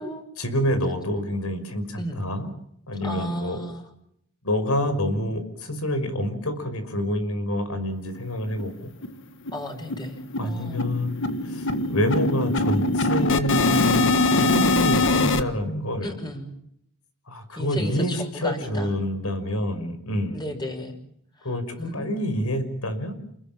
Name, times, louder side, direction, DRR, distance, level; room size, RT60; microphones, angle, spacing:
voice 1, 0.4-2.5 2.9-3.6 4.4-8.9 10.4-16.1 17.3-20.4 21.4-23.2, left 1 dB, 75° left, 9 dB, 5.8 m, -27 dB
voice 2, 3.0-3.9 9.5-10.9 16.0-16.5 17.5-18.9 20.3-21.0 21.4-21.5 21.8-22.5, equal, 20° left, 4 dB, 6.1 m, -34 dB
sound 1, 8.1-8.2 8.6-8.7 9.0-9.2 9.5-15.4, left 2 dB, 60° left, 1.7 m, -23 dB
29.5 x 20.5 x 7.6 m, 0.74 s
head